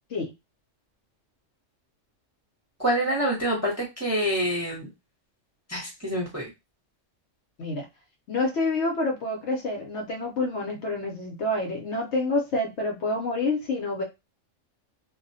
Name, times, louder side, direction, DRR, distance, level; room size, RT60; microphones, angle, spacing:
voice 1, 2.8-4.9 5.7-6.5, right 1 dB, 15° right, -5 dB, 0.6 m, -26 dB
voice 2, 8.3-14.0, left 2 dB, 65° left, 1 dB, 0.9 m, -28 dB
2.3 x 2.1 x 2.6 m, 0.23 s
omnidirectional pair, 1.3 m